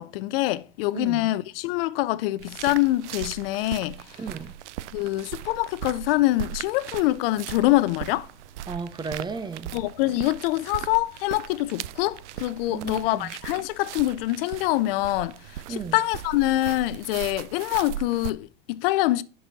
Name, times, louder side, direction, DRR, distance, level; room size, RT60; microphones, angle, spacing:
voice 1, 0.0-4.0 4.9-8.3 9.7-19.2, left 17 dB, 55° left, 0.6 m, -25 dB
voice 2, 0.9-1.3 4.2-4.5 8.7-9.7 12.7-13.3 15.7-16.0, right 5 dB, 15° right, 0.6 m, -34 dB
sound 1, 2.4-18.3, right 13 dB, 80° right, 0.5 m, -39 dB
10.5 x 6.2 x 4.1 m
hypercardioid pair, 125°, 35 cm